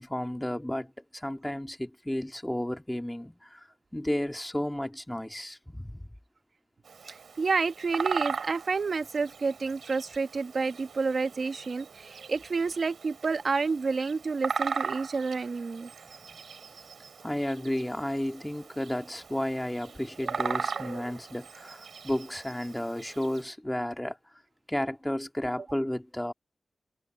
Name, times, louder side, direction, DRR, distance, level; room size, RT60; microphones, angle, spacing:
voice 1, 0.0-6.1 16.2-16.4 17.2-24.2 24.7-26.3, left 1 dB, 10° left, 3.3 m, -33 dB
Bird vocalization bird call bird song, 6.8-23.4, right 6 dB, 80° right, 3.4 m, -38 dB
voice 2, 7.0-15.9, right 4 dB, 60° right, 1.3 m, -29 dB
cardioid pair, 50°, 0 cm